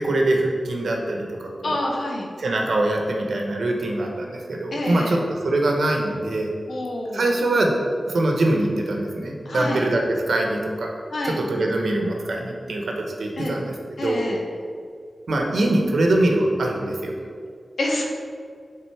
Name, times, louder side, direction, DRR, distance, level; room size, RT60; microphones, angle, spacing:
voice 1, 0.0-1.8 2.4-6.5 7.1-7.7 8.1-10.9 11.2-14.2 15.3-17.1, right 2 dB, 90° right, 1 dB, 1.0 m, -23 dB
voice 2, 1.6-2.3 4.7-5.2 6.7-7.3 9.5-9.8 11.1-11.4 13.4-13.5 14.0-14.4 17.8-18.0, left 1 dB, 75° left, -1 dB, 0.9 m, -27 dB
7.8 x 3.7 x 4.7 m, 2.2 s
wide cardioid pair, 90°, 0 cm